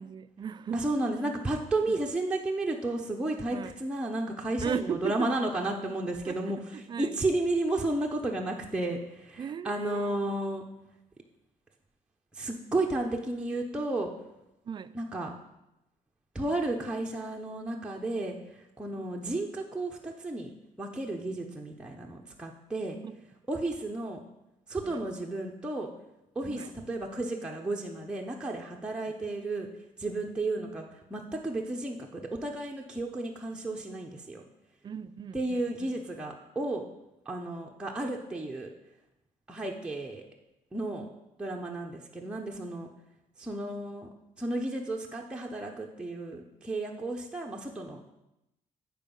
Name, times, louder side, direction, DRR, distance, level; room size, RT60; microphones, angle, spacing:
voice 1, 0.0-0.9 1.9-2.0 3.5-3.8 4.6-5.3 6.3-7.2 9.4-10.2 14.6-14.9 23.0-23.2 24.8-25.0 26.4-26.7 28.9-29.2 34.8-36.0, right 7 dB, 30° right, 0.3 m, -37 dB
voice 2, 0.7-6.6 7.0-10.6 12.4-14.1 14.9-15.3 16.3-20.5 20.8-23.0 23.5-24.2 24.7-25.9 26.4-29.7 30.0-34.4 35.3-36.8 37.3-38.7 39.5-40.2 40.7-41.1 41.4-42.9 43.4-44.1 44.4-48.1, right 2 dB, 5° right, 0.7 m, -33 dB
8.8 x 4.7 x 5.3 m
cardioid pair, 110°, 15 cm